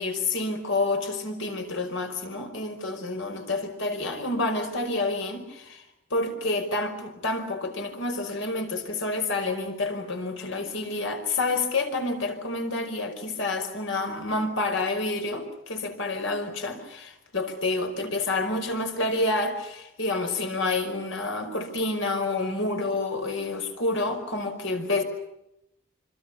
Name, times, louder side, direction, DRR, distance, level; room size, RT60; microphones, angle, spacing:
voice 1, 0.0-5.8 6.1-25.0, left 2 dB, 70° left, 6 dB, 5.2 m, -28 dB
27.0 x 25.5 x 7.1 m, 0.85 s
head